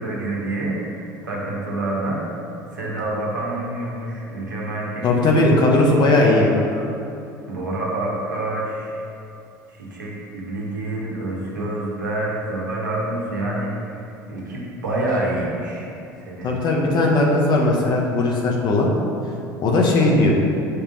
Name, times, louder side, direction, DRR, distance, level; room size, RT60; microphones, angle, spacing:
voice 1, 0.0-2.2 2.7-5.6 6.5-6.8 7.5-9.1 9.7-15.9 16.2-16.5, right 2 dB, 85° right, -5 dB, 1.4 m, -27 dB
voice 2, 5.0-6.5 16.4-18.9 19.6-20.3, left 2 dB, 45° left, -1 dB, 1.1 m, -18 dB
7.0 x 3.7 x 5.3 m, 2.7 s
figure-of-eight pair, 65°, 10 cm